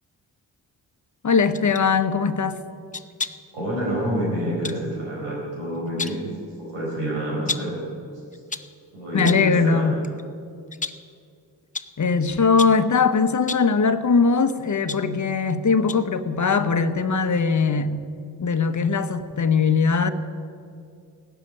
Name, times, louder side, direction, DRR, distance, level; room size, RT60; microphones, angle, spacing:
voice 1, 1.2-2.6 9.1-10.0 12.0-18.0 18.4-20.1, left 5 dB, 40° left, 10 dB, 1.1 m, -20 dB
sound 1, 1.5-1.9 2.9-3.5 4.6-4.8 5.7-6.3 7.5-7.8 8.3-8.8 9.2-9.6 10.0-10.2 10.7-11.1 11.7-12.0 12.6-12.9 13.4-13.8 14.5-15.5 15.9-16.2 16.5-16.6, left 4 dB, 20° left, 0.7 m, -33 dB
voice 2, 3.5-6.2 6.6-7.8 8.9-9.9, right 1 dB, 90° right, -4 dB, 4.9 m, -27 dB
16.5 x 7.5 x 9.7 m, 2.3 s
supercardioid pair, 40°, 45 cm